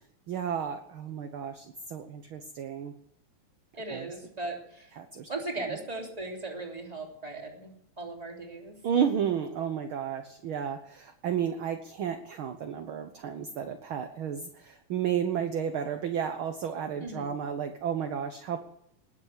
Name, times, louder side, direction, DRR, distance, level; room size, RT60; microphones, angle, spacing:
voice 1, 0.3-2.9 3.9-4.1 4.9-5.3 5.7-5.8 8.8-18.6, right 8 dB, 60° right, 7 dB, 1.5 m, -32 dB
voice 2, 3.8-4.9 5.3-7.7 8.0-8.7 17.0-17.3, right 2 dB, 15° right, 1 dB, 3.1 m, -37 dB
20.0 x 8.2 x 8.3 m, 0.74 s
omnidirectional pair, 3.4 m